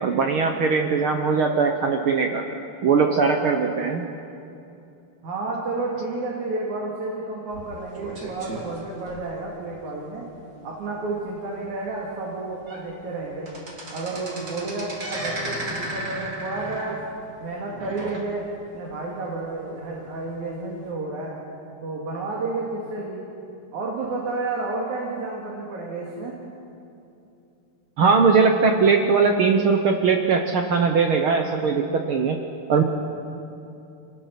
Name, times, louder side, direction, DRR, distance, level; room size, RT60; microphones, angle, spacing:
voice 1, 0.0-2.4 2.8-4.0 28.0-32.4 32.7-32.8, right 5 dB, 85° right, 4 dB, 1.1 m, -20 dB
voice 2, 5.2-10.2 10.6-13.5 13.9-17.0 17.4-18.5 18.7-21.3 21.8-23.2 23.7-26.4, right 3 dB, 60° right, -3 dB, 3.8 m, -31 dB
sound 1, 7.5-9.7 10.2-10.4 10.7-10.8 11.4-11.5 12.1-12.2 12.5-12.9 13.2-18.7 19.0-19.1 19.9-20.0, right 1 dB, 30° right, 2.7 m, -35 dB
28.0 x 19.5 x 5.9 m, 2.7 s
omnidirectional pair, 3.9 m